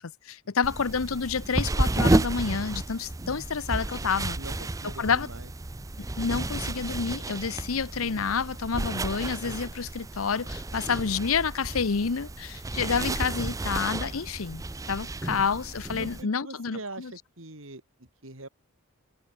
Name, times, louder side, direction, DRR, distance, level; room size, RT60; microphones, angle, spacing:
voice 1, 0.0-4.4 4.8-5.3 6.0-14.6 14.9-17.1, left 5 dB, 80° left, 0.8 m, -29 dB
sound 1, 0.6-16.2, right 2 dB, 15° right, 0.5 m, -31 dB
voice 2, 4.3-5.5 15.9-18.5, right 2 dB, 70° right, 4.0 m, -43 dB
head